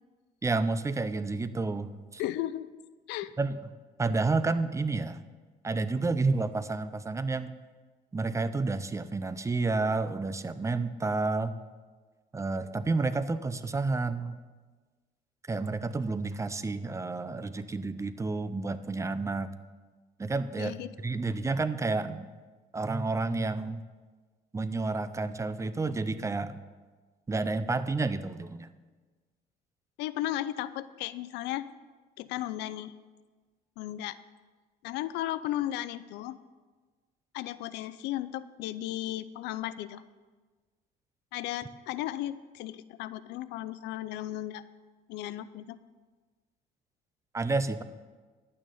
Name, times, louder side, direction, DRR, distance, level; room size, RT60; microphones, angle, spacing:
voice 1, 0.4-2.2 3.4-3.6 4.0-5.2 5.6-7.5 8.1-11.5 12.3-14.4 15.5-19.5 20.2-22.3 22.7-23.8 24.5-26.6 27.3-28.7 47.3-47.8, right 3 dB, 15° right, 13 dB, 0.6 m, -30 dB
voice 2, 2.2-2.7 3.1-3.3 20.6-20.9 30.0-31.7 32.2-32.9 33.8-34.2 34.8-36.4 37.3-40.0 41.3-44.6 45.1-45.8, left 13 dB, 90° left, 15 dB, 0.5 m, -35 dB
11.0 x 9.0 x 5.5 m, 1.4 s
cardioid pair, 110°, 17 cm